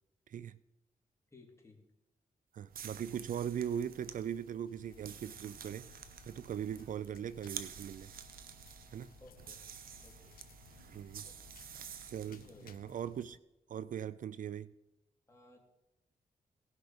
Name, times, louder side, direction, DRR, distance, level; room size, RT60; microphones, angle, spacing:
voice 1, 0.3-0.6 2.5-5.9 6.3-8.1 8.9-9.1 10.9-11.3 12.1-13.4 13.7-14.7, right 9 dB, 65° right, 17 dB, 0.4 m, -40 dB
voice 2, 1.3-1.8 9.2-9.6 10.0-10.4 11.2-11.4 12.2-12.8 15.3-15.6, left 2 dB, 20° left, 0 dB, 3.1 m, -58 dB
sound 1, 2.7-12.6, right 8 dB, 80° right, 0.8 m, -50 dB
sound 2, 4.6-13.4, left 10 dB, 80° left, 0.5 m, -60 dB
17.5 x 6.2 x 5.1 m, 0.92 s
cardioid pair, 75°, 15 cm